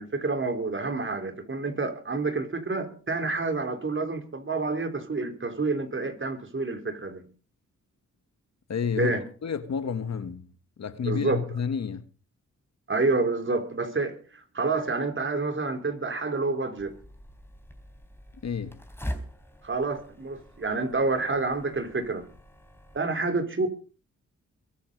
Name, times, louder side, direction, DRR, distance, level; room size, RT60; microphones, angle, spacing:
voice 1, 0.0-7.3 8.9-9.2 11.0-11.4 12.9-16.9 19.6-22.3 22.9-23.7, right 3 dB, 40° right, 3.8 m, -28 dB
voice 2, 8.7-9.1 9.4-10.5 10.8-12.1 18.4-18.8, left 6 dB, 60° left, 1.6 m, -30 dB
sound 1, 16.8-23.0, equal, 10° left, 3.6 m, -42 dB
23.0 x 8.4 x 5.4 m
cardioid pair, 60°, 30 cm